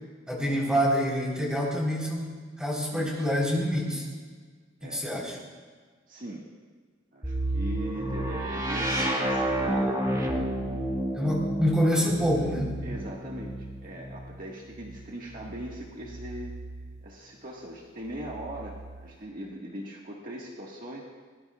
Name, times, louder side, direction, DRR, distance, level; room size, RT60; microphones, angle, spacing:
voice 1, 0.3-4.1 4.8-5.4 11.2-12.8, equal, 5° right, -3 dB, 3.9 m, -26 dB
voice 2, 2.9-3.2 4.8-5.0 6.1-6.5 7.1-10.8 11.9-12.0 12.8-16.5 17.0-21.0, right 1 dB, 50° right, -2 dB, 1.7 m, -40 dB
sound 1, 7.2-17.1 18.1-19.1, right 1 dB, 20° right, 1.8 m, -31 dB
22.0 x 19.0 x 2.4 m, 1.5 s
head